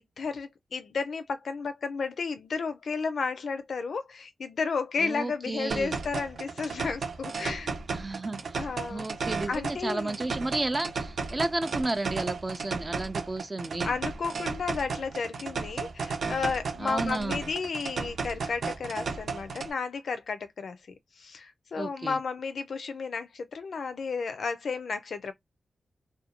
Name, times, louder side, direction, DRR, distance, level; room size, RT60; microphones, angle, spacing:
voice 1, 0.0-7.7 8.6-9.1 9.5-10.2 13.8-20.8 21.2-25.3, left 5 dB, 75° left, 0.4 m, -33 dB
voice 2, 5.0-6.0 7.9-8.6 8.9-13.9 16.8-17.4 21.8-22.2, right 2 dB, 25° right, 0.3 m, -32 dB
sound 1, 5.7-19.7, right 4 dB, 75° right, 0.7 m, -34 dB
2.5 x 2.2 x 2.8 m
wide cardioid pair, 120°, 0 cm